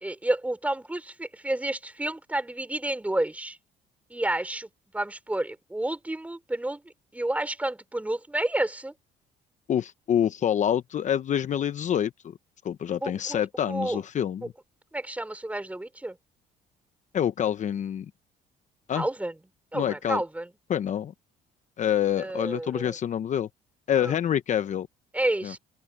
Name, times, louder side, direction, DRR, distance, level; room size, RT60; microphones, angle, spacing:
voice 1, 0.0-3.6 4.1-6.8 7.1-8.9 13.0-13.4 13.7-14.0 14.9-16.2 18.9-19.3 19.7-20.5 22.2-23.0 24.0-24.2 25.1-25.6, right 1 dB, 10° right, 4.0 m, -30 dB
voice 2, 9.7-12.3 12.6-14.5 17.1-18.1 18.9-19.1 19.7-20.2 20.7-21.1 21.8-23.5 23.9-24.9 25.4-25.5, left 9 dB, 45° left, 0.8 m, -26 dB
open air
cardioid pair, 110°, 17 cm